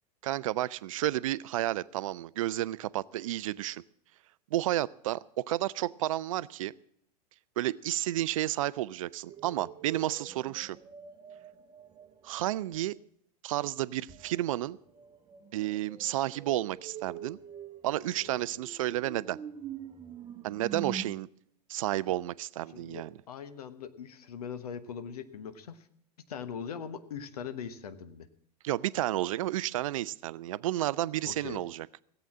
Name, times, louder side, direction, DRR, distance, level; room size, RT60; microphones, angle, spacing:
voice 1, 0.2-3.8 4.5-6.7 7.6-10.8 12.2-13.0 13.4-14.8 15.5-17.4 17.8-19.4 20.4-21.3 21.7-23.1 28.6-31.9, right 14 dB, 55° right, 20 dB, 0.4 m, -31 dB
sound 1, 9.2-12.9 14.1-21.0, right 8 dB, 20° right, 1.1 m, -45 dB
voice 2, 18.2-18.6 22.7-25.9 26.3-28.3 31.2-31.6, left 7 dB, 65° left, 12 dB, 1.2 m, -41 dB
17.0 x 8.1 x 7.3 m, 0.67 s
figure-of-eight pair, 90°, 21 cm